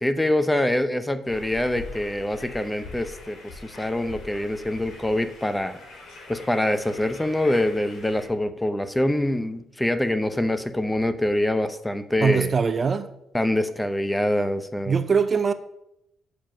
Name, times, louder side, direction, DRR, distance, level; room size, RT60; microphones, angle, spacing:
voice 1, 0.0-5.8 6.3-12.5 13.3-14.9, left 1 dB, 10° left, 0.7 m, -25 dB
sound 1, 1.3-8.3, left 3 dB, 75° left, 3.5 m, -43 dB
voice 2, 12.2-13.1 14.9-15.5, right 6 dB, 40° right, 0.5 m, -22 dB
7.4 x 5.1 x 6.5 m
cardioid pair, 90°, 0 cm